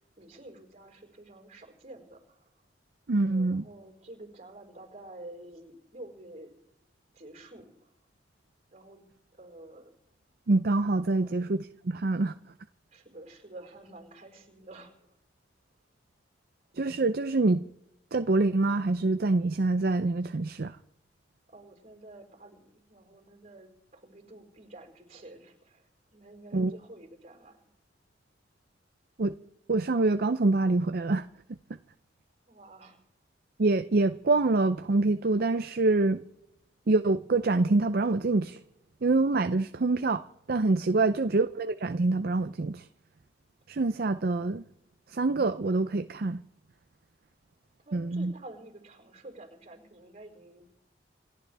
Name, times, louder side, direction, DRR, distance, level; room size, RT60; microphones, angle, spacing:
voice 1, 0.2-2.2 3.2-6.5 7.2-7.7 8.7-9.0 9.4-9.9 11.1-11.3 12.9-14.9 21.5-25.5 26.1-27.6 32.5-33.0 47.9-50.7, right 1 dB, 35° right, 4.6 m, -49 dB
voice 2, 3.1-3.7 10.5-12.3 16.8-17.7 18.1-20.8 26.5-26.7 29.2-29.3 29.7-31.3 33.6-36.2 36.9-38.6 39.0-42.9 43.7-44.6 45.1-46.4 47.9-48.3, right 3 dB, 55° right, 0.5 m, -26 dB
28.5 x 12.5 x 3.4 m
head